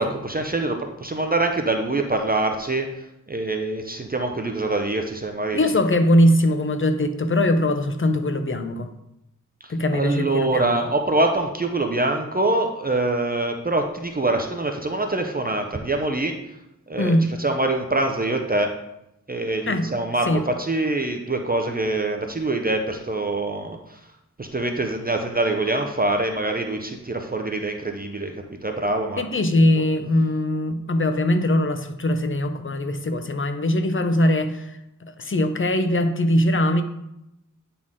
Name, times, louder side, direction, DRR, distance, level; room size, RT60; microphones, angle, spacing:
voice 1, 0.0-2.9 3.3-5.6 9.6-16.4 16.9-18.7 19.3-24.0 24.4-28.3 28.6-29.2 29.8-29.9, right 2 dB, 30° right, 4 dB, 0.6 m, -24 dB
voice 2, 5.5-8.9 9.7-10.8 17.0-17.2 19.7-19.9 20.3-20.4 29.2-36.8, left 1 dB, 40° left, 8 dB, 0.6 m, -21 dB
9.0 x 4.2 x 3.6 m, 0.86 s
wide cardioid pair, 90°, 32 cm